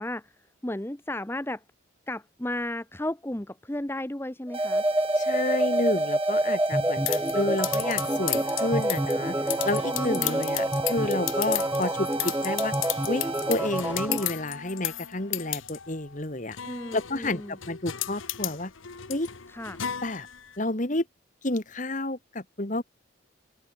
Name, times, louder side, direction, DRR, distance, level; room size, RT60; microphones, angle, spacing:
voice 1, 0.0-1.6 2.1-4.8 9.9-10.5 16.6-17.6 19.5-19.8, left 1 dB, 10° left, 0.8 m, -34 dB
sound 1, 4.5-14.3, right 1 dB, 10° right, 1.1 m, -28 dB
sound 2, 4.5-13.5, right 4 dB, 25° right, 0.6 m, -36 dB
voice 2, 5.2-9.4 9.6-12.7 13.1-16.6 16.9-17.4 17.7-18.7 19.1-19.3 20.0-20.3 20.6-21.0 21.4-22.8, left 2 dB, 40° left, 1.9 m, -30 dB
sound 3, 7.1-20.6, left 13 dB, 80° left, 1.3 m, -35 dB
open air
head